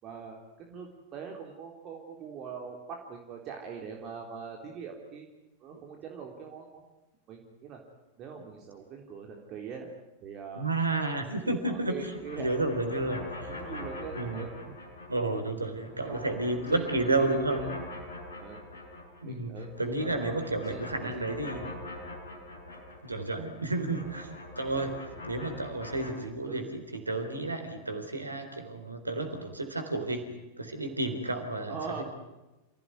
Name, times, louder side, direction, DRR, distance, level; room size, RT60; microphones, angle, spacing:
voice 1, 0.0-5.3 5.6-6.8 7.3-7.8 8.2-9.9 10.2-10.7 11.3-12.9 13.4-14.7 15.9-16.4 16.7-16.9 17.2-17.7 18.4-18.6 19.2-21.2 21.5-21.7 26.5-26.6 31.7-32.0, right 6 dB, 35° right, 1 dB, 3.7 m, -43 dB
voice 2, 10.5-13.4 14.1-14.5 15.1-17.7 19.2-21.7 23.0-25.0 25.2-30.2 30.6-32.0, right 2 dB, 80° right, 7 dB, 3.9 m, -31 dB
sound 1, 11.7-15.3 15.6-19.3 19.5-26.1, left 2 dB, 70° left, 6.1 m, -43 dB
28.5 x 17.0 x 9.6 m, 1.0 s
figure-of-eight pair, 90°, 0 cm